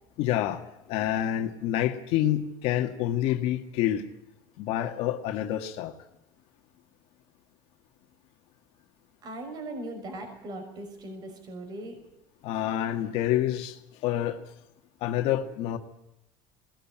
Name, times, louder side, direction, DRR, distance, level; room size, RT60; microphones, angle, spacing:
voice 1, 0.2-0.6 0.9-4.0 4.6-5.9 12.4-13.8 14.0-14.4 15.0-15.8, left 12 dB, 60° left, 6 dB, 1.9 m, -27 dB
voice 2, 9.2-12.0, right 1 dB, 40° right, 4 dB, 5.9 m, -39 dB
21.5 x 19.5 x 8.9 m, 0.86 s
cardioid pair, 140°, 11 cm